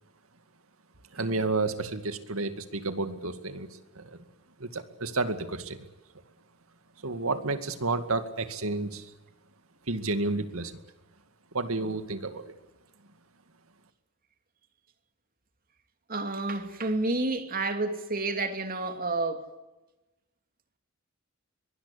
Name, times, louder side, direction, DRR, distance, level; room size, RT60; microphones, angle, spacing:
voice 1, 1.1-3.7 4.0-4.2 4.6-5.8 7.0-9.1 9.9-10.7 11.5-12.5, right 3 dB, 85° right, 2.2 m, -31 dB
voice 2, 16.1-19.5, right 2 dB, 45° right, 2.8 m, -30 dB
23.5 x 19.5 x 8.5 m
head